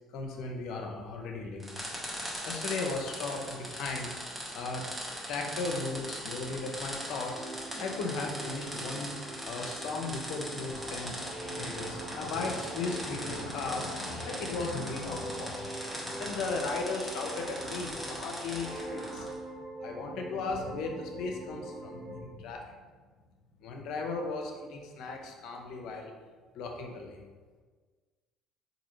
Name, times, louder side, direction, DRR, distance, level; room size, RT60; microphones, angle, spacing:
voice 1, 0.1-1.9 2.4-4.1 4.5-4.9 5.3-9.2 9.4-19.3 19.8-22.7 23.6-26.1 26.5-27.2, left 3 dB, 70° left, 2 dB, 0.6 m, -36 dB
sound 1, 1.6-19.4, equal, 10° right, 1.1 m, -40 dB
sound 2, 7.3-14.5 14.9-18.3 18.6-22.3, right 2 dB, 35° right, 1.3 m, -44 dB
sound 3, 10.7-19.3, equal, 55° right, 1.4 m, -46 dB
3.9 x 2.6 x 3.0 m, 1.4 s
hypercardioid pair, 65°, 0 cm